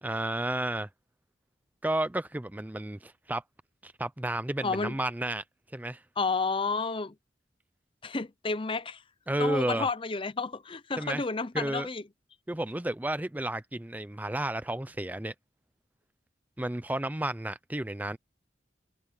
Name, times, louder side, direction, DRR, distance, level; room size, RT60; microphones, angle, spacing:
voice 1, 0.0-0.9 1.8-3.4 3.8-5.4 5.7-6.0 9.3-9.9 11.0-11.2 11.5-11.9 12.5-15.3 16.6-18.2, right 1 dB, 10° right, 0.5 m, -32 dB
voice 2, 4.6-5.0 6.2-7.1 8.0-9.0 9.4-12.0, left 4 dB, 30° left, 0.8 m, -31 dB
head